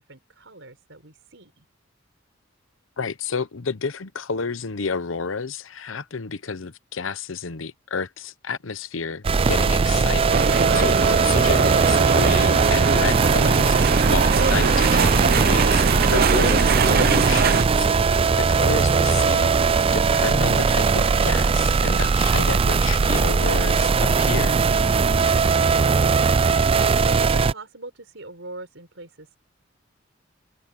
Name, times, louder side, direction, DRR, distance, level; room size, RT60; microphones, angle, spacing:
voice 1, 0.0-1.7 27.0-29.3, right 2 dB, 70° right, 5.7 m, -43 dB
voice 2, 3.0-18.1 18.4-24.6, left 5 dB, 80° left, 0.9 m, -31 dB
sound 1, 9.2-27.5, right 4 dB, 30° right, 0.4 m, -19 dB
sound 2, 10.3-17.7, right 5 dB, 50° right, 0.7 m, -22 dB
head